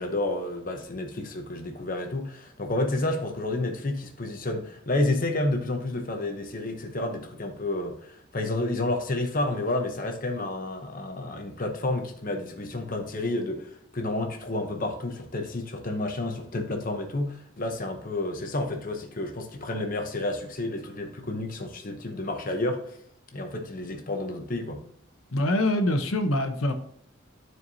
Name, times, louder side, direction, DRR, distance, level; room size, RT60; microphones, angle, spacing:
voice 1, 0.0-22.8 23.3-24.8, left 2 dB, 40° left, 0.9 m, -30 dB
voice 2, 25.3-26.7, left 1 dB, 85° left, 1.0 m, -24 dB
12.5 x 4.6 x 2.8 m
head